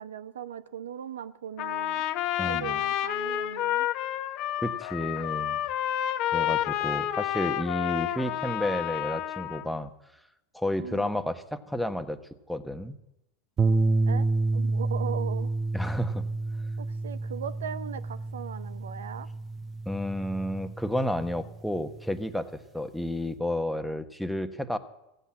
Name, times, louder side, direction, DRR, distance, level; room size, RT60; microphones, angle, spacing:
voice 1, 0.0-2.0 2.4-3.9 10.8-11.1 14.1-15.5 16.8-19.3, right 9 dB, 85° right, 16 dB, 0.7 m, -39 dB
Trumpet, 1.6-9.7, left 12 dB, 55° left, 0.9 m, -30 dB
voice 2, 2.4-2.8 4.6-5.6 6.3-9.9 10.5-12.2 12.5-13.0 15.7-16.3 19.9-24.8, left 1 dB, ahead, 8 dB, 1.1 m, -31 dB
sound 1, 13.6-22.0, right 3 dB, 30° right, 0.8 m, -29 dB
15.5 x 8.2 x 8.8 m, 0.90 s
hypercardioid pair, 100°, 0 cm